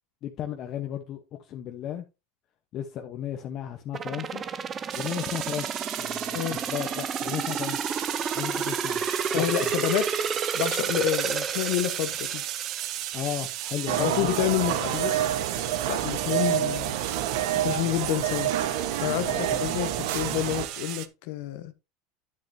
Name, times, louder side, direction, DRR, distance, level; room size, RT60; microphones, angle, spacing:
voice 1, 0.2-2.0 2.7-4.4 4.9-7.8 8.3-9.1 9.3-9.7 13.1-14.5 19.2-19.6, left 10 dB, 45° left, 1.0 m, -35 dB
sound 1, 3.9-14.7 15.1-15.2, right 6 dB, 25° right, 0.7 m, -31 dB
sound 2, 4.9-21.1, right 15 dB, 55° right, 0.9 m, -35 dB
voice 2, 9.3-10.1 10.5-12.4 13.9-15.2 15.9-17.0 17.6-18.5 19.0-19.3 19.6-21.7, left 14 dB, 70° left, 1.1 m, -28 dB
sound 3, 13.9-20.7, right 11 dB, 80° right, 1.3 m, -28 dB
9.9 x 7.7 x 2.8 m
supercardioid pair, 130°, 0 cm